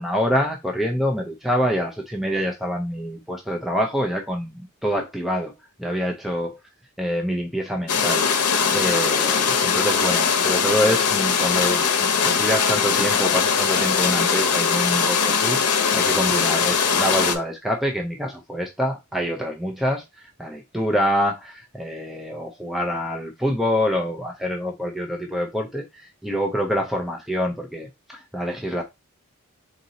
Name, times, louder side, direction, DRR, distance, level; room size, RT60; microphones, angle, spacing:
voice 1, 0.0-5.5 5.8-6.6 7.0-15.6 15.9-28.8, equal, ahead, 0.5 m, -26 dB
sound 1, 7.9-17.4, left 6 dB, 80° left, 0.7 m, -21 dB
3.8 x 2.7 x 4.0 m
head